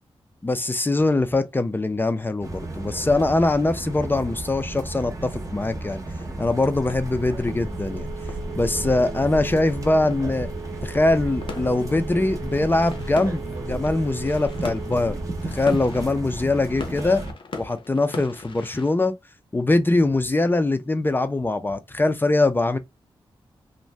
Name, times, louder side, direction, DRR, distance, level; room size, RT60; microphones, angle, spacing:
voice 1, 0.4-6.0 6.4-8.1 8.6-10.5 10.8-15.2 15.4-17.2 17.6-19.1 19.5-22.8, left 2 dB, 20° left, 0.4 m, -22 dB
sound 1, 2.4-17.3, right 2 dB, 35° right, 0.7 m, -34 dB
sound 2, 2.6-18.9, left 4 dB, 60° left, 0.6 m, -43 dB
Telephone, 6.8-15.7, right 3 dB, 80° right, 0.4 m, -37 dB
2.6 x 2.1 x 3.2 m
wide cardioid pair, 100°, 10 cm